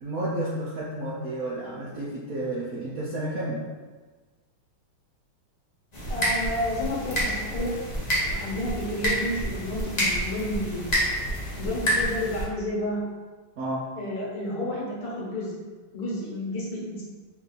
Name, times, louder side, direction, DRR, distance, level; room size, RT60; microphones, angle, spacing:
voice 1, 0.0-3.7 13.6-13.9, right 1 dB, 65° right, -7 dB, 0.9 m, -31 dB
sound 1, 5.9-12.4, equal, 40° left, 0.6 m, -28 dB
voice 2, 6.1-7.8 8.3-10.9 11.6-13.1 14.0-15.5 15.9-17.0, left 1 dB, 60° left, -5 dB, 1.7 m, -31 dB
4.4 x 2.7 x 3.9 m, 1.4 s
omnidirectional pair, 2.2 m